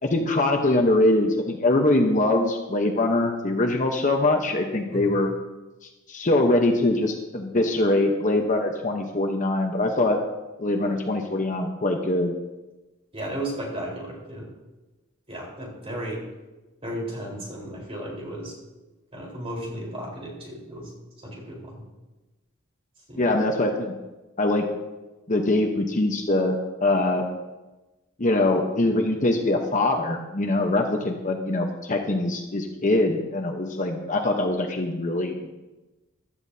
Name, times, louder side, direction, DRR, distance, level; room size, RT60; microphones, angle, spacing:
voice 1, 0.0-5.3 6.1-10.2 10.6-12.3 23.2-23.9 24.4-24.7 25.3-27.2 28.2-35.5, left 2 dB, 40° left, 3 dB, 1.0 m, -23 dB
voice 2, 13.1-14.5 15.3-16.2 16.8-18.5 19.1-20.9 21.2-21.8 23.1-23.3, right 1 dB, 30° right, -3 dB, 4.2 m, -34 dB
16.0 x 12.5 x 2.8 m, 1.1 s
head